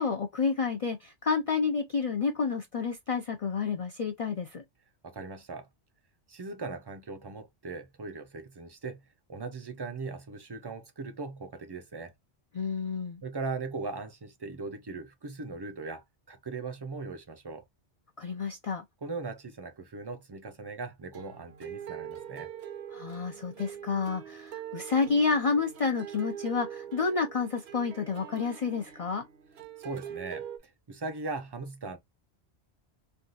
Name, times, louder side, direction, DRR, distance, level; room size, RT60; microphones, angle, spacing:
voice 1, 0.0-4.6 12.5-13.2 18.2-18.8 22.9-29.2, left 5 dB, 50° left, 0.4 m, -30 dB
voice 2, 5.0-5.7 6.3-9.0 9.3-12.1 13.2-17.6 19.0-22.5 29.8-32.0, right 3 dB, 35° right, 0.4 m, -39 dB
sound 1, 21.1-30.6, right 9 dB, 70° right, 0.9 m, -43 dB
3.5 x 2.3 x 2.5 m
omnidirectional pair, 1.1 m